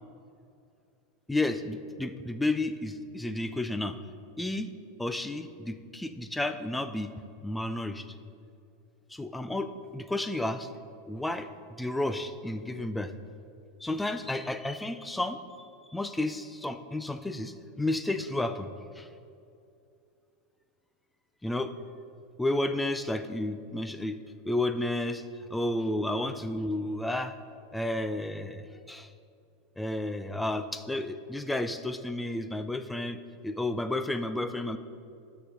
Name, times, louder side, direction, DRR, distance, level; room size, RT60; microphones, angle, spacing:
voice 1, 1.3-4.0 4.4-4.7 5.0-7.1 7.4-8.1 9.1-10.7 11.1-11.5 11.8-13.1 13.8-15.4 15.9-19.1 21.4-21.7 22.4-24.2 24.5-25.2 25.5-27.4 27.7-29.1 29.8-34.8, left 1 dB, 5° left, 10 dB, 0.4 m, -32 dB
11.5 x 4.2 x 5.2 m, 2.6 s
supercardioid pair, 120°, 0 cm